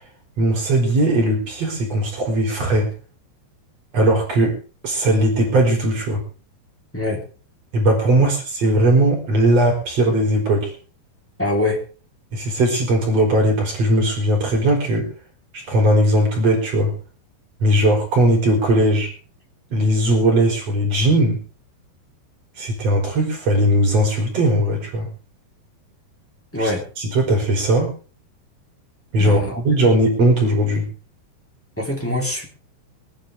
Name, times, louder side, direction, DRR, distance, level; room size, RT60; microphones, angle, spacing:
voice 1, 0.4-2.9 3.9-4.6 4.8-6.2 7.7-8.4 8.6-10.7 12.3-15.1 15.7-16.9 17.6-19.1 19.7-21.4 22.6-25.1 26.6-26.7 27.0-27.9 29.1-30.9, right 1 dB, 40° right, 0 dB, 4.9 m, -18 dB
voice 2, 6.9-7.2 8.2-8.3 11.4-11.8 26.5-26.8 29.2-29.6 31.8-32.5, left 1 dB, 5° left, -1 dB, 2.8 m, -23 dB
24.5 x 9.8 x 3.5 m, 0.35 s
omnidirectional pair, 4.6 m